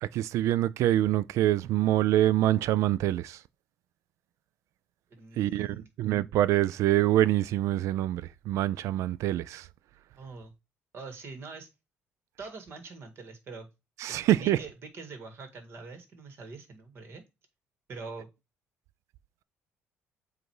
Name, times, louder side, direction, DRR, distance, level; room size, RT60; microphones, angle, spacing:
voice 1, 0.0-3.4 5.4-9.7 14.0-14.6, right 13 dB, 75° right, 0.4 m, -25 dB
voice 2, 5.1-5.9 10.1-10.5 10.9-11.7 12.4-13.7 14.1-17.2 17.9-18.3, right 4 dB, 50° right, 1.8 m, -44 dB
7.8 x 2.6 x 4.7 m
cardioid pair, 105°, 5 cm